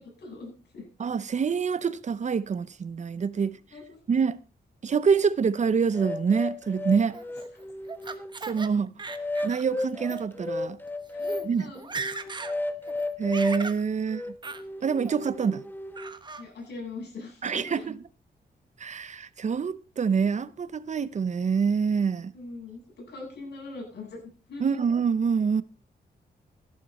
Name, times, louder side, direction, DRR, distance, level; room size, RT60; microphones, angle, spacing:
voice 1, 0.0-0.9 3.7-4.0 11.1-11.9 16.4-17.8 22.3-24.2 24.5-24.8, left 3 dB, 85° left, 7.9 m, -41 dB
voice 2, 1.0-3.6 4.1-4.4 4.8-7.2 8.5-8.9 9.4-10.8 11.4-11.7 13.2-14.2 14.8-15.6 17.4-18.0 18.8-22.3 24.6-25.6, right 6 dB, 45° right, 0.7 m, -26 dB
sound 1, 5.9-8.4 9.1-11.5 12.0-13.7 14.1-16.1, left 2 dB, 10° left, 1.2 m, -34 dB
Laughter, 7.1-8.7 9.0-9.7 10.0-10.2 10.9-11.0 11.2-11.5 11.8-12.5 12.9-13.8 14.4-14.6 15.0-15.5 16.0-16.4, right 4 dB, 25° right, 1.2 m, -37 dB
15.0 x 11.0 x 4.3 m
wide cardioid pair, 115°, 17 cm